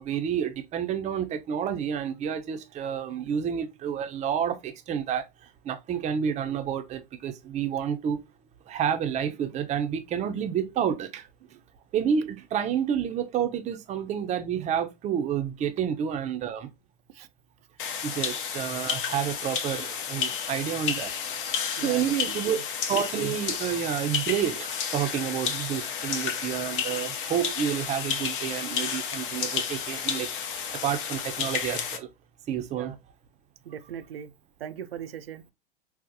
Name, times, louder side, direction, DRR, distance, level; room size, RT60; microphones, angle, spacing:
voice 1, 0.0-8.2 8.7-11.3 11.9-16.7 18.0-21.1 21.6-22.6 22.9-30.3 30.7-32.1 32.5-32.9, right 8 dB, 25° right, 0.5 m, -29 dB
sound 1, 17.8-32.0, left 7 dB, 60° left, 0.7 m, -31 dB
voice 2, 22.3-22.6 32.7-33.0 33.6-34.3 34.6-35.4, right 9 dB, 80° right, 0.5 m, -39 dB
3.9 x 2.1 x 2.7 m
hypercardioid pair, 95°, 29 cm